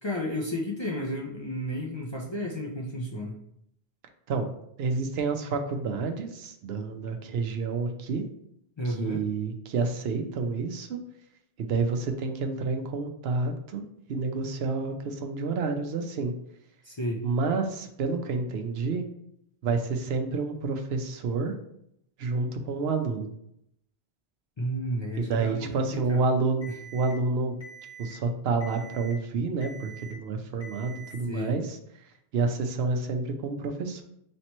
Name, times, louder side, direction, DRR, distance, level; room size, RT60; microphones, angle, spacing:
voice 1, 0.0-3.4 8.8-9.2 16.8-17.2 24.6-26.2 26.7-26.8 31.2-31.6, equal, 35° left, -2 dB, 0.5 m, -32 dB
voice 2, 4.8-8.2 8.9-11.0 11.6-13.8 14.1-16.3 17.2-19.0 19.6-21.5 22.2-23.3 25.2-27.6 28.0-31.8 32.3-34.0, right 4 dB, 75° right, 5 dB, 0.8 m, -29 dB
Alarm, 26.6-27.1 27.6-28.1 28.6-29.1 29.6-30.1 30.6-31.1, right 4 dB, 65° left, 1.5 m, -45 dB
3.2 x 3.0 x 4.1 m, 0.74 s
omnidirectional pair, 1.1 m